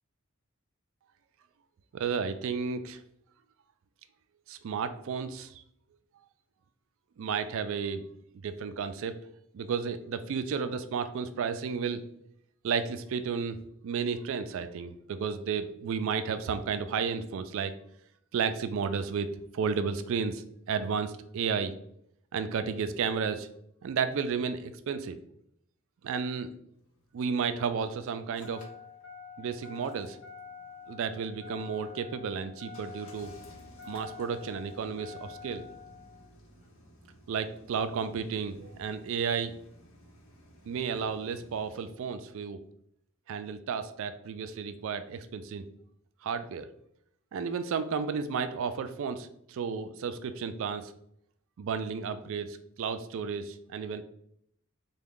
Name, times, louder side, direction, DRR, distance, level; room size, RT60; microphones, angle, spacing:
voice 1, 1.9-3.0 4.5-5.5 7.2-8.0 8.3-9.1 9.5-12.0 12.6-13.6 13.8-17.7 18.3-21.7 22.3-23.5 23.8-25.2 26.0-26.5 27.1-28.6 29.4-30.2 30.9-33.3 33.9-35.6 37.3-39.5 40.7-42.6 43.3-45.6 46.2-46.7 47.3-50.9 51.6-54.0, right 6 dB, 60° right, 11 dB, 0.3 m, -32 dB
Engine starting, 26.8-41.9, left 5 dB, 65° left, 0.8 m, -50 dB
3.5 x 2.2 x 3.6 m, 0.73 s
head